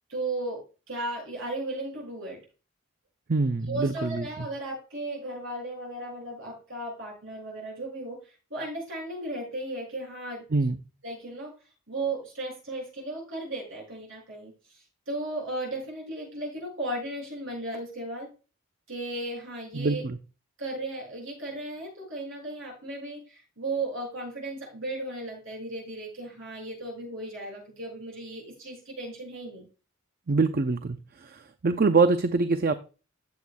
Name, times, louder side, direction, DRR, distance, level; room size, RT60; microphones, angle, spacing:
voice 1, 0.1-2.4 3.6-10.4 11.0-11.5 11.9-18.3 18.9-20.1 20.6-29.7, right 2 dB, 60° right, -1 dB, 6.4 m, -35 dB
voice 2, 3.3-4.2 10.5-10.8 19.7-20.2 30.3-32.7, right 3 dB, 40° right, 9 dB, 0.5 m, -24 dB
15.5 x 7.8 x 2.2 m, 0.33 s
head